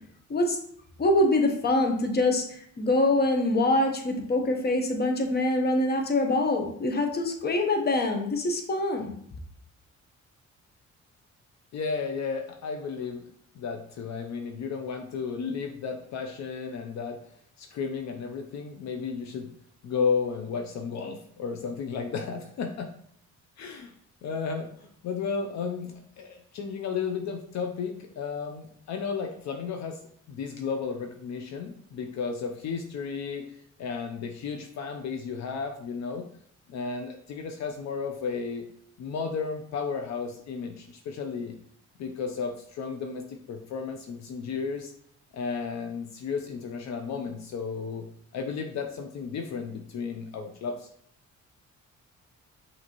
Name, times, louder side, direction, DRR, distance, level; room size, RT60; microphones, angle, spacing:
voice 1, 1.0-9.1, left 2 dB, 35° left, 4 dB, 0.8 m, -24 dB
voice 2, 11.7-13.3 13.6-17.2 17.6-19.5 19.8-22.9 23.6-23.9 24.2-30.0 30.3-36.3 36.7-38.6 39.0-41.6 42.0-44.9 45.3-48.1 48.3-50.9, left 5 dB, 65° left, 4 dB, 0.5 m, -33 dB
5.9 x 2.8 x 2.9 m, 0.65 s
cardioid pair, 90°, 30 cm